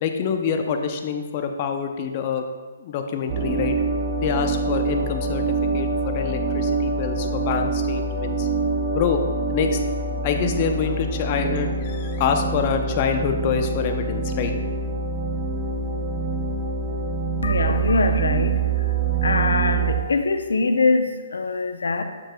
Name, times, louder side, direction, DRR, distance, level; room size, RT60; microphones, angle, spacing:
voice 1, 0.0-2.5 2.8-3.8 4.2-8.5 8.9-9.2 9.5-9.8 10.2-14.5, left 6 dB, 40° left, 5 dB, 0.6 m, -26 dB
sound 1, 3.3-20.0, right 4 dB, 35° right, 0.8 m, -25 dB
voice 2, 17.4-18.9 19.2-22.0, left 3 dB, 80° left, 7 dB, 0.6 m, -23 dB
7.3 x 6.8 x 2.3 m, 1.4 s
hypercardioid pair, 140°, 0 cm